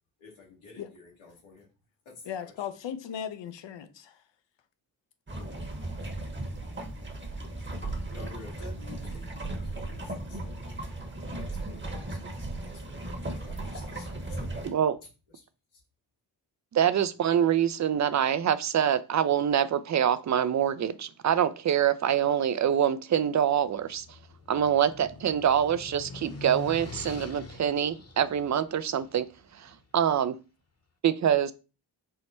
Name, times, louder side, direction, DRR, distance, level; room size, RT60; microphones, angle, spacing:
voice 1, 0.2-1.6 2.0-2.1 2.4-2.5 8.1-9.5 9.8-14.8 15.3-15.4, left 3 dB, 85° left, 1.6 m, -51 dB
voice 2, 2.2-4.2, left 9 dB, 65° left, 0.7 m, -37 dB
sound 1, 5.3-14.7, right 2 dB, 25° right, 1.1 m, -36 dB
voice 3, 14.6-15.0 16.7-24.0 24.5-29.3 29.6-30.4 31.0-31.5, right 9 dB, 40° right, 0.5 m, -25 dB
sound 2, 23.6-29.8, left 3 dB, 35° left, 1.0 m, -44 dB
4.5 x 2.1 x 4.2 m
supercardioid pair, 40°, 46 cm